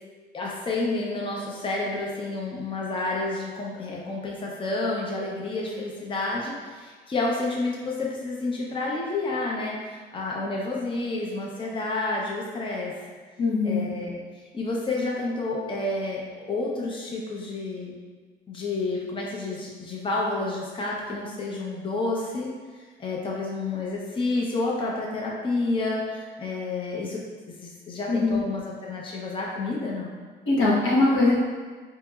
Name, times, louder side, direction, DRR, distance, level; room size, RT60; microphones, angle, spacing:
voice 1, 0.3-12.9 13.6-14.2 14.5-16.2 16.5-18.0 18.5-22.5 23.0-30.1, left 2 dB, 25° left, -3 dB, 0.6 m, -30 dB
voice 2, 13.4-13.9 28.1-28.4 30.5-31.3, left 2 dB, 80° left, -6 dB, 1.1 m, -21 dB
4.1 x 2.9 x 2.3 m, 1.5 s
cardioid pair, 90°, 20 cm